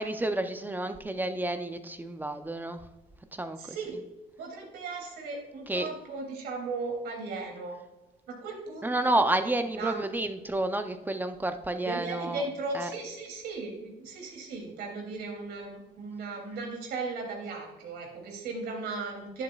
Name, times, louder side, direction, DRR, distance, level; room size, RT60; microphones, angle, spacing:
voice 1, 0.0-2.8 3.3-3.8 5.7-5.9 8.8-12.4 12.7-12.9, right 2 dB, 10° right, 8 dB, 0.6 m, -30 dB
voice 2, 3.6-4.0 4.4-7.8 8.3-9.2 9.7-10.0 11.8-19.4, right 3 dB, 75° right, 1 dB, 3.0 m, -37 dB
11.0 x 7.7 x 2.4 m, 1.0 s
cardioid pair, 110°, 17 cm